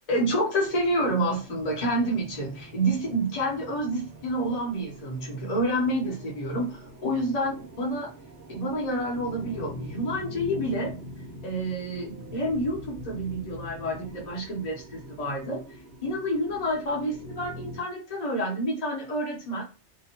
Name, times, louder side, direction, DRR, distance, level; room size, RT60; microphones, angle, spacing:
voice 1, 0.1-8.1 8.5-11.0 11.4-15.6 16.0-19.6, right 1 dB, 40° left, -3 dB, 0.8 m, -28 dB
sound 1, 0.6-17.8, equal, 90° right, 1.1 m, -44 dB
2.8 x 2.1 x 2.8 m, 0.32 s
omnidirectional pair, 1.2 m